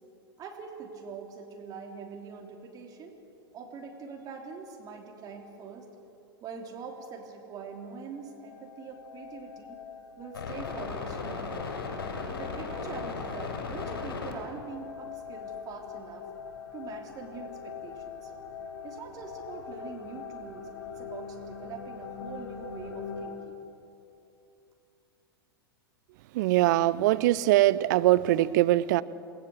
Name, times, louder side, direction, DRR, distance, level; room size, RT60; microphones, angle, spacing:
voice 1, 0.4-3.2 3.5-5.9 6.4-9.8 10.2-11.7 12.2-16.3 16.7-18.3 18.8-23.6, right 5 dB, 30° right, 2 dB, 3.1 m, -43 dB
sound 1, 7.9-8.0 8.2-23.3, left 5 dB, 65° left, 6.6 m, -39 dB
voice 2, 26.3-29.0, right 16 dB, 50° right, 16 dB, 0.8 m, -22 dB
28.5 x 20.5 x 8.0 m, 2.8 s
figure-of-eight pair, 95°, 13 cm